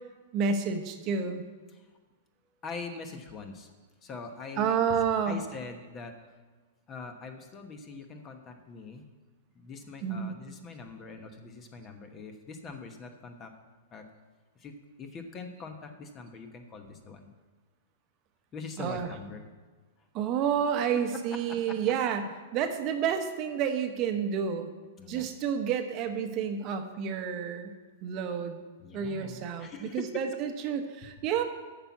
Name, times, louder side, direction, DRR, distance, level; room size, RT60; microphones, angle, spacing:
voice 1, 0.3-1.4 4.6-5.4 10.0-10.3 18.8-19.1 20.1-22.3 22.5-24.7 25.1-27.7 28.0-28.6 28.9-31.4, right 7 dB, 40° right, 6 dB, 0.9 m, -30 dB
voice 2, 2.6-3.7 4.0-6.1 6.9-9.0 9.5-13.5 13.9-14.0 14.6-17.3 18.5-19.4 21.7-21.8 25.0-25.3 28.8-30.2 30.7-31.2, left 4 dB, 25° left, 6 dB, 1.1 m, -43 dB
8.8 x 6.0 x 7.2 m, 1.4 s
hypercardioid pair, 130°, 0 cm